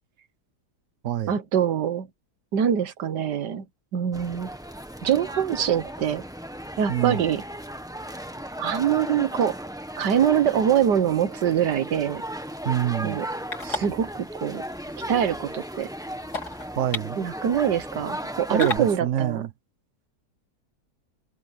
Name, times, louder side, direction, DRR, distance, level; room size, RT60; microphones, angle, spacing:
voice 1, 1.3-2.1 2.5-3.6 3.9-4.5 5.0-6.2 6.8-7.4 8.6-9.6 10.0-12.2 13.0-13.3 13.6-14.6 15.1-15.9 17.2-19.4, right 9 dB, 75° right, 1.7 m, -24 dB
sound 1, 4.1-19.0, equal, ahead, 1.2 m, -36 dB
voice 2, 6.9-7.2 12.6-13.2 16.8-17.2 18.5-19.5, right 10 dB, 50° right, 1.1 m, -26 dB
sound 2, 11.4-18.8, left 3 dB, 65° left, 4.4 m, -38 dB
omnidirectional pair, 1.8 m